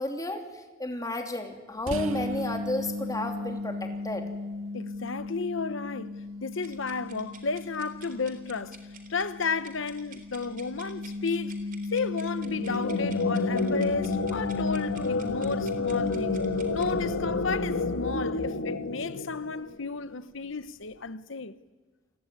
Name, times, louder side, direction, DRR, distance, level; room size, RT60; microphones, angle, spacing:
voice 1, 0.0-4.2, left 1 dB, 15° left, 3.0 m, -32 dB
sound 1, 1.9-19.4, left 2 dB, 90° right, 2.1 m, -37 dB
voice 2, 4.7-6.2 6.4-8.8 9.1-11.6 11.9-16.4 16.7-21.6, left 4 dB, 65° left, 0.9 m, -33 dB
sound 2, 6.6-17.0, right 6 dB, 40° right, 3.9 m, -51 dB
sound 3, 12.4-19.9, left 3 dB, 85° left, 1.4 m, -29 dB
29.0 x 21.5 x 9.5 m
head